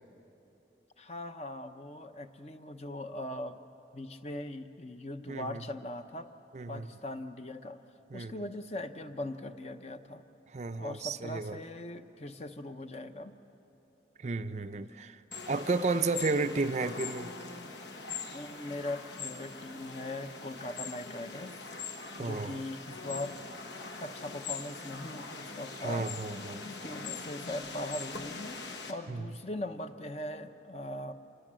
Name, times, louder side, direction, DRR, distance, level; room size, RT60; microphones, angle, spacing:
voice 1, 1.0-3.6 3.9-6.3 6.7-7.8 8.1-10.2 10.8-13.3 15.4-15.5 18.3-21.8 22.2-23.4 24.0-26.1 26.6-28.6 28.9-31.1, left 1 dB, 35° left, 8 dB, 0.8 m, -40 dB
voice 2, 5.3-5.6 6.5-6.9 8.1-8.4 10.5-11.6 14.2-15.2 15.5-17.3 22.2-22.6 25.8-26.6 29.1-29.2, right 3 dB, 40° right, 10 dB, 0.5 m, -32 dB
sound 1, 15.3-28.9, left 4 dB, 75° left, 1.5 m, -42 dB
26.5 x 20.0 x 7.6 m, 3.0 s
head